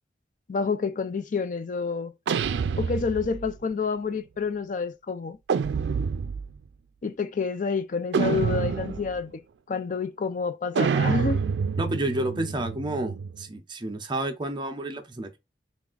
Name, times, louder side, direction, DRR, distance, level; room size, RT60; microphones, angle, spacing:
voice 1, 0.5-2.1 2.8-5.4 7.0-9.4 9.7-11.4, left 5 dB, 45° left, 0.4 m, -28 dB
sound 1, 2.3-3.6 5.5-6.6 8.1-9.2 10.8-13.4, right 6 dB, 75° right, 0.4 m, -27 dB
voice 2, 11.8-15.4, right 1 dB, 25° right, 0.6 m, -30 dB
3.4 x 2.4 x 3.8 m
head